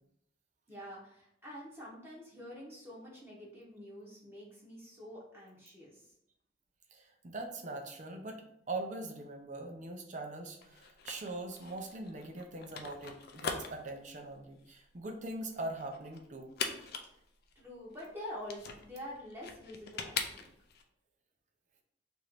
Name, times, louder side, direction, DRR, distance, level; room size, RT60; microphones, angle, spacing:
voice 1, 0.7-6.1 17.1-17.2 17.5-20.5, left 1 dB, 15° right, -5 dB, 0.9 m, -47 dB
voice 2, 6.9-8.4 8.7-16.5, right 2 dB, 40° right, 3 dB, 0.6 m, -42 dB
sound 1, 10.6-20.8, left 5 dB, 55° left, 0.4 m, -42 dB
3.0 x 2.6 x 4.4 m, 0.76 s
head